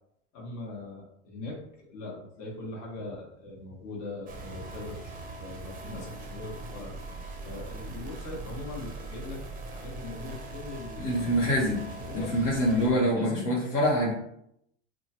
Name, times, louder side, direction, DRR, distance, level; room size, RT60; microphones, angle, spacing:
voice 1, 0.3-5.1 5.4-7.1 7.4-9.4 9.7-11.2 12.0-12.3 12.6-13.4, left 2 dB, 45° left, -4 dB, 1.2 m, -40 dB
sound 1, 4.3-12.9, right 3 dB, 20° right, 0.6 m, -41 dB
voice 2, 11.0-11.9 12.1-14.1, equal, 75° left, -5 dB, 1.2 m, -25 dB
2.9 x 2.4 x 2.8 m, 0.75 s
hypercardioid pair, 95°, 37 cm